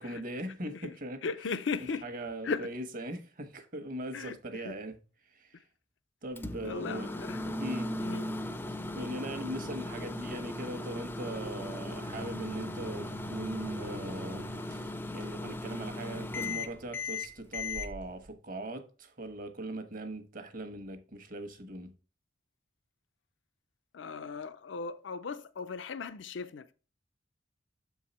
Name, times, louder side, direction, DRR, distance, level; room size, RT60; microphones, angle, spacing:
voice 1, 0.0-1.2 2.0-5.0 5.3-5.6 6.2-7.1 7.6-7.9 8.7-21.9, right 1 dB, 45° right, 1.2 m, -40 dB
voice 2, 1.2-2.0 2.4-2.7 4.1-4.7 6.6-8.3 23.9-26.7, left 5 dB, 75° left, 0.5 m, -37 dB
Microwave oven, 6.4-17.9, left 2 dB, 10° left, 0.5 m, -38 dB
sound 1, 12.1-18.3, right 3 dB, 65° right, 0.6 m, -49 dB
7.3 x 4.7 x 4.2 m
head